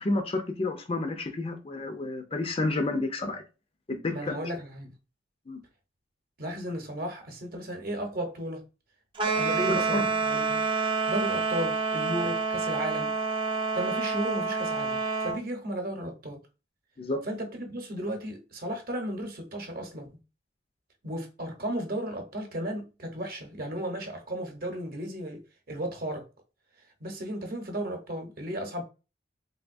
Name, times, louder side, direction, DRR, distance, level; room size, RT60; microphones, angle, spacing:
voice 1, 0.0-3.4 3.9-4.4 5.5-5.6 9.6-10.1 17.0-17.2, left 2 dB, 30° left, 0.5 m, -30 dB
voice 2, 4.1-4.9 6.4-8.6 9.2-10.6 11.1-13.1 13.7-16.4 17.3-20.2 21.0-25.4 25.7-26.3 27.0-28.8, right 1 dB, 50° right, 0.9 m, -34 dB
sound 1, 9.2-15.4, right 4 dB, 25° right, 0.4 m, -28 dB
3.4 x 2.6 x 2.5 m
head